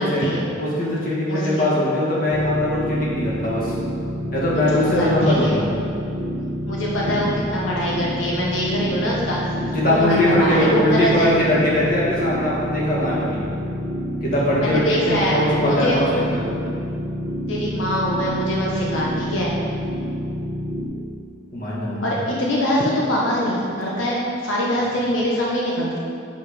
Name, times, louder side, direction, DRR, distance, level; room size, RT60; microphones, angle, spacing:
voice 1, 0.0-0.4 1.3-1.7 4.9-5.6 6.7-9.4 10.0-11.3 14.6-16.0 17.5-19.5 22.0-26.0, equal, 85° left, -4 dB, 1.1 m, -23 dB
voice 2, 0.6-3.7 4.3-5.8 9.5-13.4 14.2-16.4 21.5-22.1, left 1 dB, 45° left, -6 dB, 1.7 m, -21 dB
sound 1, 2.3-20.9, equal, 25° right, 1.1 m, -28 dB
8.0 x 4.8 x 5.0 m, 2.5 s
head